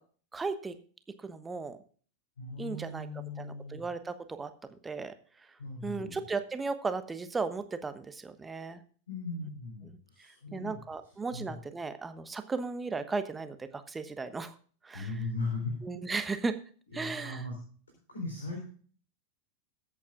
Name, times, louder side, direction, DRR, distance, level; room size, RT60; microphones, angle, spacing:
voice 1, 0.3-0.7 1.2-1.8 2.6-3.1 3.4-5.1 5.8-8.8 9.8-14.5 14.8-15.1 15.8-16.5 16.9-17.4, right 4 dB, 15° right, 10 dB, 1.2 m, -36 dB
voice 2, 2.4-3.8 5.6-6.2 9.1-10.8 11.3-11.6 14.9-15.7 16.9-17.6 18.1-18.6, left 3 dB, 70° left, 1 dB, 3.8 m, -38 dB
21.5 x 8.5 x 2.4 m, 0.43 s
figure-of-eight pair, 90°, 0 cm